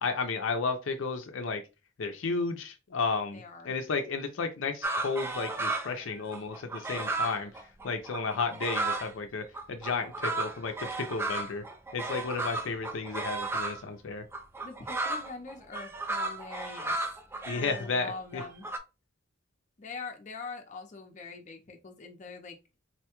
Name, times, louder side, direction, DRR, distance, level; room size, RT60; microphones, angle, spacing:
voice 1, 0.0-1.6 2.0-7.5 7.8-11.6 11.9-14.2 17.4-18.4, left 4 dB, 80° left, 0.5 m, -33 dB
voice 2, 3.3-3.7 14.6-17.0 17.5-18.7 19.8-22.6, left 4 dB, 40° left, 0.6 m, -43 dB
sound 1, 4.8-6.0 6.3-9.1 9.5-13.8 14.3-18.8, right 3 dB, 10° right, 0.4 m, -34 dB
4.1 x 2.2 x 2.9 m
head